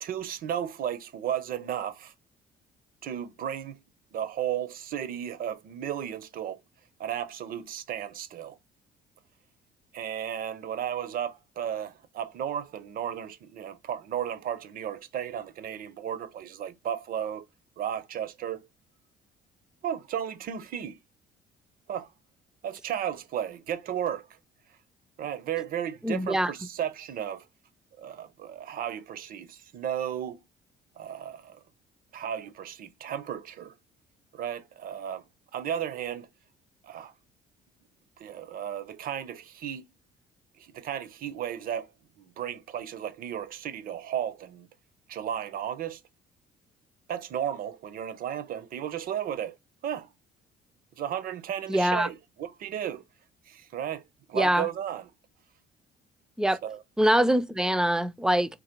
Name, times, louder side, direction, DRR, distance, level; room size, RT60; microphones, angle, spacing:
voice 1, 0.0-2.1 3.0-3.8 4.1-6.6 7.0-8.6 9.9-17.4 17.8-18.7 19.8-21.0 21.9-22.1 22.6-24.3 25.2-27.5 28.0-30.4 31.0-31.6 32.1-33.7 34.3-35.2 35.5-36.3 36.8-37.1 38.2-39.9 40.6-41.9 42.4-44.7 45.1-46.0 47.1-49.6 49.8-50.1 51.0-53.0 53.5-54.0 54.3-55.1 56.6-56.8, right 9 dB, 60° right, 0.6 m, -34 dB
voice 2, 26.0-26.5 51.7-52.1 54.3-54.7 56.4-56.6 57.0-58.6, right 1 dB, 5° right, 0.3 m, -24 dB
3.9 x 2.8 x 4.4 m
cardioid pair, 110°, 17 cm